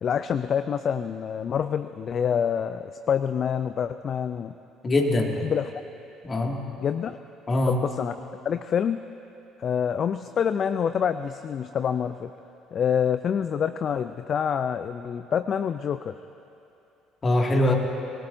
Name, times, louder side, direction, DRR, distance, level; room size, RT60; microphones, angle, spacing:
voice 1, 0.0-4.6 5.4-5.7 6.8-7.2 7.7-8.2 8.4-9.0 9.6-12.3 12.7-16.2, left 8 dB, 50° left, 11 dB, 0.4 m, -26 dB
voice 2, 4.8-5.4 6.2-6.6 7.5-7.9 17.2-17.7, left 1 dB, 30° left, 1 dB, 2.2 m, -22 dB
25.5 x 18.5 x 2.7 m, 2.8 s
hypercardioid pair, 60°, 0 cm